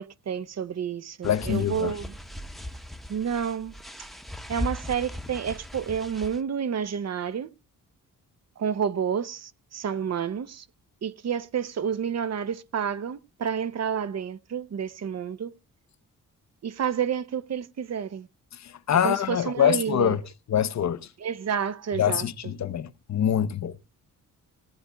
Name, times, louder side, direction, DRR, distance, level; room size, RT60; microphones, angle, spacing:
voice 1, 0.0-2.1 3.1-3.7 4.5-7.5 8.6-10.7 11.0-15.5 16.6-18.3 19.0-20.1 21.2-22.3, right 8 dB, 50° right, 0.9 m, -30 dB
voice 2, 1.2-1.9 18.5-20.2 20.5-21.1 21.9-23.8, left 9 dB, 55° left, 0.9 m, -25 dB
sound 1, 1.2-6.4, left 1 dB, ahead, 1.0 m, -38 dB
17.5 x 9.7 x 3.5 m
cardioid pair, 125°, 33 cm